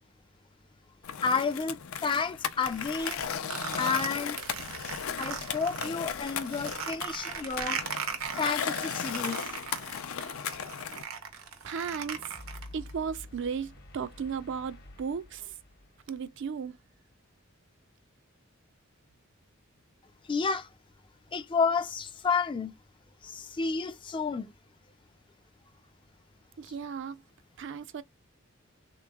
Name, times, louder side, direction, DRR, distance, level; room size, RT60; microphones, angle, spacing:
Skateboard, 1.0-11.0, left 7 dB, 75° left, 0.5 m, -36 dB
voice 1, 1.2-3.2 3.8-4.4 5.2-7.8 8.3-9.5 20.2-20.7 21.3-22.7 23.2-24.5, left 5 dB, 25° left, 0.3 m, -31 dB
sound 1, 2.7-5.9 6.3-12.9, right 7 dB, 90° right, 0.9 m, -38 dB
sound 2, 11.6-17.0, left 2 dB, 50° left, 0.9 m, -50 dB
voice 2, 11.6-12.3 12.7-15.6 16.1-16.8 26.6-27.2 27.6-28.0, right 6 dB, 60° right, 0.4 m, -35 dB
3.5 x 3.0 x 2.2 m
head